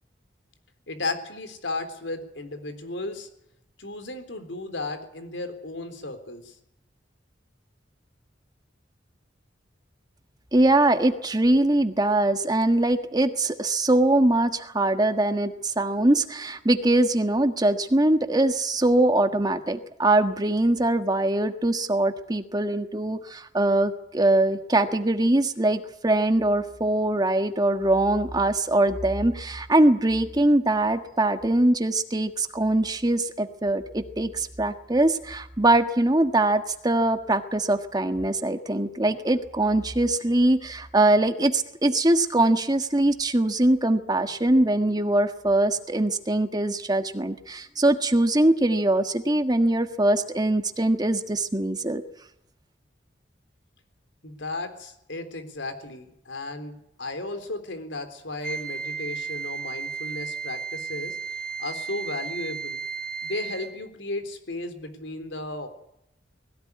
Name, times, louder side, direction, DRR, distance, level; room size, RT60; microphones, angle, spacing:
voice 1, 0.9-3.3 3.8-6.6 54.2-61.2 61.6-62.8 63.2-65.7, left 2 dB, 90° left, 8 dB, 3.7 m, -34 dB
voice 2, 10.5-52.0, right 1 dB, 20° right, 8 dB, 1.5 m, -22 dB
Wind instrument woodwind instrument, 58.4-63.8, right 5 dB, 5° left, 2.6 m, -34 dB
20.5 x 17.0 x 9.7 m, 0.79 s
head